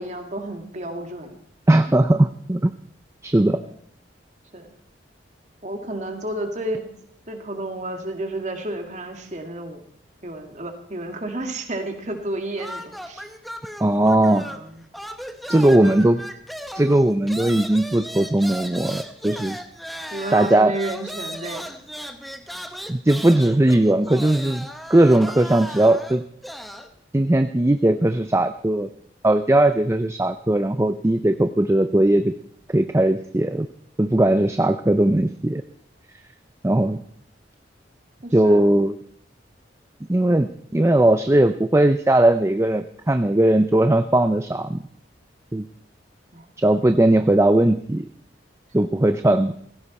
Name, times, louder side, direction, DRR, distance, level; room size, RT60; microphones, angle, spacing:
voice 1, 0.0-1.4 3.5-3.7 4.5-4.7 5.6-6.9 7.3-9.8 10.2-13.2 14.1-14.9 15.5-16.1 20.1-21.7 38.2-38.7 46.3-46.5 48.8-48.9, right 1 dB, 40° right, 4 dB, 2.2 m, -31 dB
voice 2, 1.7-2.7 3.2-3.6 13.8-14.4 15.5-16.2 16.7-19.6 20.3-20.7 22.9-26.2 27.1-28.9 29.2-32.3 32.7-33.7 34.0-35.6 36.6-37.0 38.3-38.9 40.1-44.8 45.5-45.7 46.6-48.1 48.7-49.5, right 1 dB, 15° right, 9 dB, 0.5 m, -18 dB
sound 1, 12.6-14.7 14.9-26.9, equal, ahead, 0.9 m, -36 dB
16.5 x 15.5 x 4.2 m, 0.66 s
head